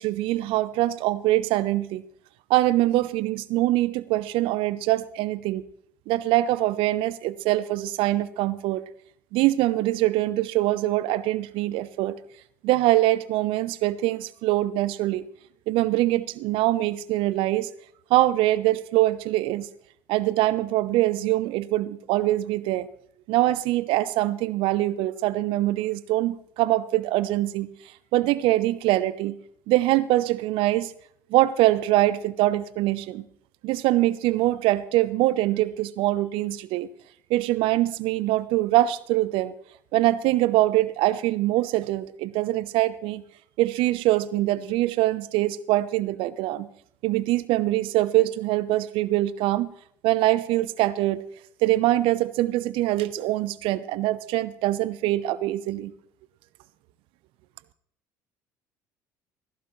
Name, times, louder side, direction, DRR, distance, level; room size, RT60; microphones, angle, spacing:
voice 1, 0.0-2.0 2.5-5.6 6.1-8.8 9.3-12.2 12.6-15.2 15.7-17.7 18.1-19.7 20.1-22.9 23.3-27.7 28.1-29.4 29.7-30.9 31.3-33.2 33.6-36.9 37.3-39.5 39.9-43.2 43.6-46.7 47.0-49.7 50.0-51.2 51.6-55.9, right 16 dB, 60° right, 17 dB, 0.8 m, -23 dB
17.0 x 16.5 x 3.2 m, 0.64 s
hypercardioid pair, 60°, 10 cm